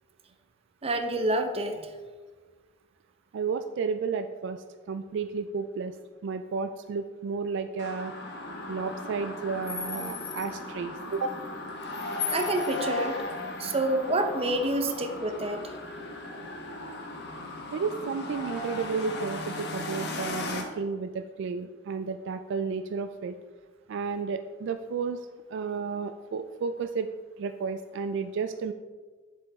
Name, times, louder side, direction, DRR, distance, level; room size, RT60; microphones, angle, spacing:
voice 1, 0.8-1.9 12.3-13.2 13.6-15.6, right 1 dB, 30° right, 6 dB, 0.7 m, -28 dB
voice 2, 3.3-6.0 6.2-8.1 8.7-11.4 17.7-23.4 23.9-27.1 27.4-28.7, right 5 dB, 65° right, 10 dB, 0.3 m, -32 dB
sound 1, 7.8-20.6, left 2 dB, 60° left, 1.1 m, -36 dB
7.5 x 6.9 x 3.5 m, 1.4 s
head